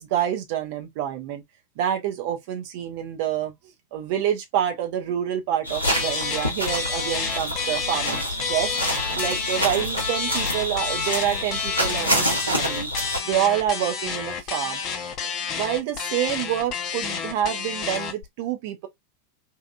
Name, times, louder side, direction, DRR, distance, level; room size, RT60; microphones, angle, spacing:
voice 1, 0.0-1.4 1.8-3.5 3.9-8.7 9.1-12.9 13.2-14.8 15.5-18.9, right 10 dB, 50° right, 0.7 m, -27 dB
sound 1, 5.6-13.2, equal, 90° right, 0.9 m, -27 dB
sound 2, 5.8-18.2, left 6 dB, 35° left, 0.6 m, -30 dB
2.7 x 2.5 x 2.2 m
figure-of-eight pair, 90°, 0 cm